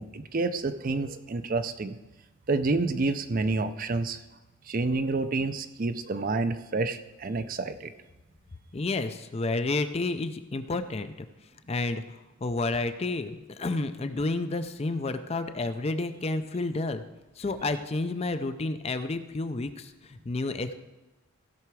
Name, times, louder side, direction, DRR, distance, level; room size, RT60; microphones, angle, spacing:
voice 1, 0.0-2.0 2.5-4.2 4.7-7.9, right 3 dB, 40° right, 11 dB, 0.5 m, -29 dB
voice 2, 8.7-11.3 11.7-17.0 17.4-20.7, left 2 dB, 25° left, 10 dB, 0.4 m, -30 dB
15.5 x 5.8 x 4.7 m, 1.1 s
head